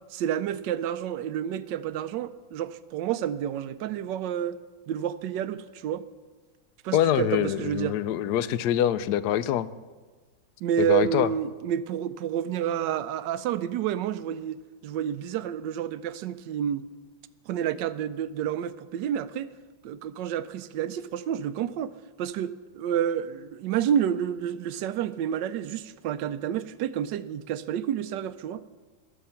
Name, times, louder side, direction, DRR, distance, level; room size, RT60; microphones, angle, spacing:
voice 1, 0.1-4.6 4.9-6.0 6.8-8.0 10.6-16.8 17.5-19.5 19.8-21.9 22.2-28.6, right 9 dB, 75° right, 14 dB, 1.2 m, -29 dB
voice 2, 6.9-9.7 10.8-11.3, left 11 dB, 70° left, 16 dB, 1.0 m, -25 dB
19.5 x 7.4 x 5.7 m, 1.3 s
omnidirectional pair, 2.0 m